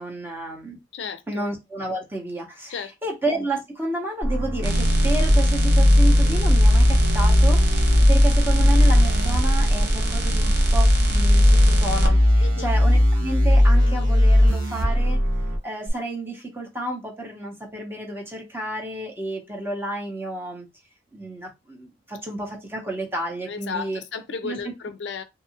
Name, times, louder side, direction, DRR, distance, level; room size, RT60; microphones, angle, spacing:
voice 1, 0.0-0.8 1.3-15.2 15.6-20.7 21.1-24.0 24.4-24.6, right 2 dB, 10° right, 0.7 m, -31 dB
voice 2, 0.9-1.5 2.7-3.1 12.4-12.7 23.4-25.2, left 5 dB, 65° left, 0.4 m, -34 dB
sound 1, 4.2-15.6, left 1 dB, 90° right, 1.1 m, -18 dB
sound 2, 4.6-12.1 15.9-16.0, right 1 dB, 60° right, 0.6 m, -24 dB
2.7 x 2.3 x 2.8 m
head